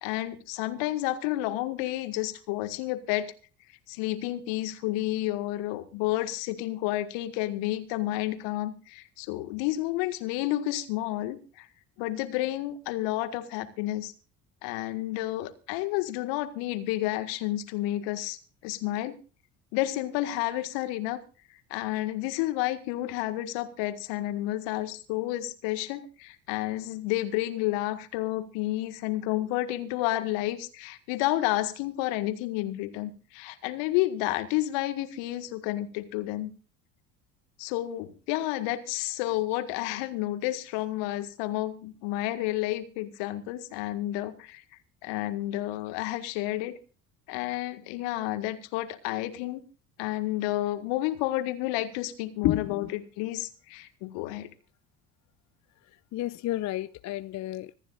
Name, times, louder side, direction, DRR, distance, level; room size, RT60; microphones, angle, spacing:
voice 1, 0.0-3.3 3.9-11.7 12.0-14.1 14.6-19.2 19.7-21.2 21.7-36.5 37.6-44.6 45.0-46.8 47.3-49.6 50.0-54.5, left 15 dB, 60° left, 1.9 m, -30 dB
voice 2, 52.4-52.9 56.1-57.8, left 15 dB, 35° left, 0.6 m, -30 dB
25.5 x 10.0 x 2.5 m
figure-of-eight pair, 60°, 48 cm